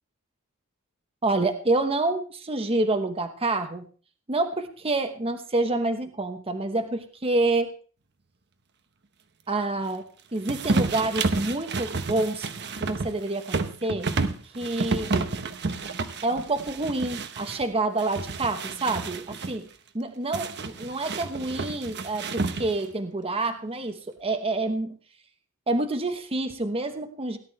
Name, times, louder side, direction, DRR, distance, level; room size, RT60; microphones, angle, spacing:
voice 1, 1.2-3.9 4.3-7.7 9.5-10.0 10.3-12.5 12.8-14.1 14.5-15.1 16.2-19.7 19.9-25.0 25.7-27.4, right 2 dB, 25° right, 7 dB, 1.0 m, -27 dB
sound 1, 10.5-17.6 18.0-19.5 20.3-22.9, right 3 dB, 55° right, 1.0 m, -30 dB
17.5 x 11.0 x 3.2 m, 0.39 s
head